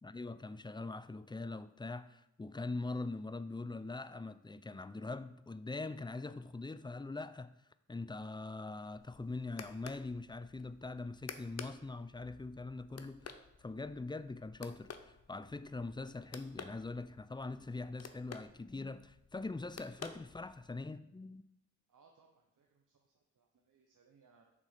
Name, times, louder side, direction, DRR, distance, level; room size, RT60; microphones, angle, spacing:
voice 1, 0.0-7.5 7.9-21.4, left 3 dB, 15° left, 0.3 m, -43 dB
sound 1, 8.9-20.8, left 6 dB, 50° left, 0.6 m, -53 dB
voice 2, 21.9-24.5, right 5 dB, 70° right, 0.7 m, -68 dB
6.1 x 3.7 x 5.6 m
cardioid pair, 40°, 32 cm